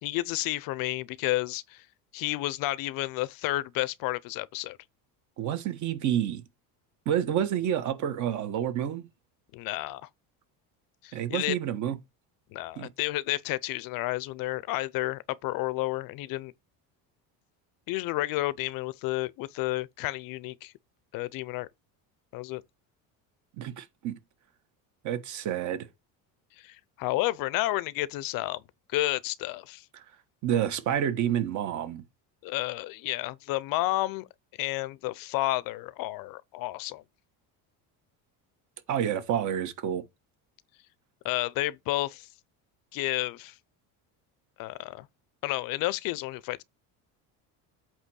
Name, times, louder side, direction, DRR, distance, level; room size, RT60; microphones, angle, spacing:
voice 1, 0.0-1.8 2.1-4.8 9.5-10.0 11.0-11.6 12.5-16.5 17.9-20.7 21.1-21.7 22.3-22.6 26.6-28.6 28.9-29.8 32.4-34.3 34.6-37.0 41.2-42.3 42.9-43.5 44.6-45.1 45.4-46.6, left 18 dB, 55° left, 0.6 m, -31 dB
voice 2, 5.4-6.4 7.0-9.1 11.1-12.0 12.8-12.9 23.6-24.2 25.0-25.9 30.4-32.0 38.9-40.0, right 10 dB, 45° right, 1.3 m, -29 dB
8.2 x 3.1 x 6.2 m
cardioid pair, 150°, 40 cm